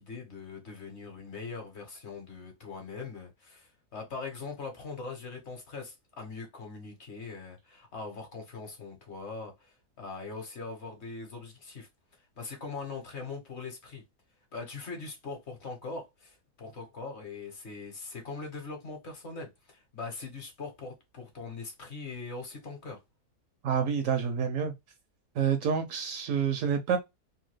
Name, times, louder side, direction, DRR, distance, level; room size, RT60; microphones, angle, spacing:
voice 1, 0.0-11.9 12.2-14.0 14.5-23.0, left 4 dB, 50° left, 1.0 m, -41 dB
voice 2, 23.6-24.7 25.4-27.0, right 7 dB, 70° right, 0.8 m, -28 dB
2.8 x 2.2 x 3.2 m
omnidirectional pair, 1.6 m